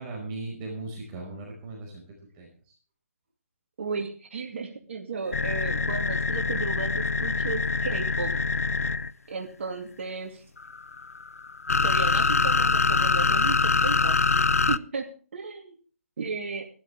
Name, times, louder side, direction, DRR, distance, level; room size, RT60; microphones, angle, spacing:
voice 1, 0.0-2.0 2.3-2.5, right 2 dB, 25° right, -1 dB, 5.1 m, -37 dB
voice 2, 3.8-8.3 9.3-10.4 11.8-15.1 15.3-15.8 16.2-16.6, right 4 dB, 60° right, 2 dB, 2.5 m, -34 dB
sound 1, 5.3-9.1 10.6-14.8, left 4 dB, 90° left, 0.5 m, -24 dB
15.5 x 13.0 x 3.4 m, 0.41 s
hypercardioid pair, 150°, 8 cm